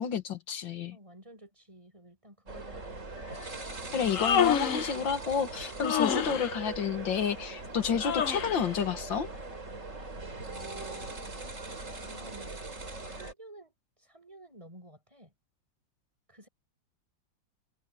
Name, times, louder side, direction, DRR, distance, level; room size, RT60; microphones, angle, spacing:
voice 1, 0.0-1.0 3.9-9.3, left 7 dB, 80° left, 2.2 m, -30 dB
voice 2, 0.9-3.0 10.4-11.6 11.9-12.5 13.0-15.3 16.3-16.5, right 1 dB, 15° right, 8.0 m, -53 dB
sound 1, 2.5-13.3, right 3 dB, 40° right, 4.6 m, -41 dB
Human voice, 3.9-5.0 5.8-6.5 8.0-8.7, left 8 dB, 50° left, 1.1 m, -28 dB
omnidirectional pair, 2.0 m